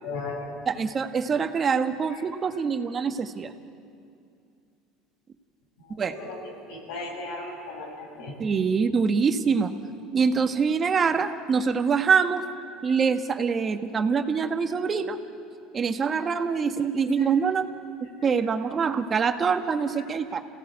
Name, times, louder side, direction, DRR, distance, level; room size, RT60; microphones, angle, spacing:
voice 1, 0.0-0.5 6.1-6.4 6.7-8.3, left 3 dB, 75° left, 0 dB, 7.6 m, -35 dB
voice 2, 0.6-3.5 6.0-6.1 8.4-9.8 10.1-12.5 12.8-15.2 15.7-17.6 18.2-20.4, right 6 dB, 35° right, 7 dB, 1.5 m, -24 dB
27.0 x 17.5 x 8.3 m, 2.4 s
supercardioid pair, 85°, 0 cm